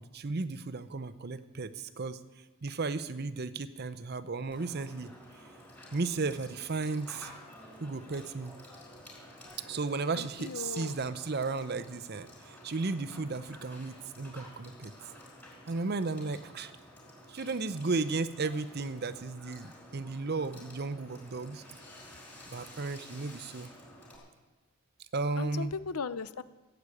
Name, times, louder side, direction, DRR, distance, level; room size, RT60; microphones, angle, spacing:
voice 1, 0.0-2.2 2.6-5.1 5.9-7.3 7.8-8.6 9.7-14.9 15.7-16.7 17.3-21.6 22.5-23.7 25.1-25.7, right 3 dB, 45° right, 12 dB, 0.6 m, -34 dB
Water / Water tap faucet / Sink (filling or washing), 4.5-24.2, left 1 dB, 10° left, 4.6 m, -52 dB
voice 2, 10.1-10.9 25.4-26.4, left 5 dB, 90° left, 14 dB, 0.7 m, -37 dB
15.0 x 8.1 x 8.5 m, 1.2 s
head